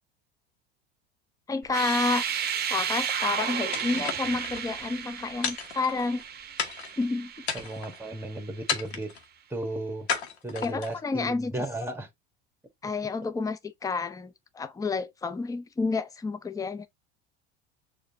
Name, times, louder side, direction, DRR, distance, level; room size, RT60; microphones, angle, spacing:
voice 1, 1.5-2.2 2.7-6.2 7.0-7.3 10.6-11.5 12.8-16.9, left 3 dB, 10° left, 0.6 m, -30 dB
sound 1, 1.6-8.5, right 8 dB, 30° right, 0.8 m, -33 dB
sound 2, 3.7-4.6 5.4-6.2 6.6-7.0 7.4-8.0 8.7-9.2 10.1-11.0, left 6 dB, 80° left, 1.2 m, -33 dB
voice 2, 7.5-9.1 9.5-10.1 10.4-12.1, right 1 dB, 5° right, 1.4 m, -34 dB
6.4 x 2.7 x 2.8 m
hypercardioid pair, 85°, 32 cm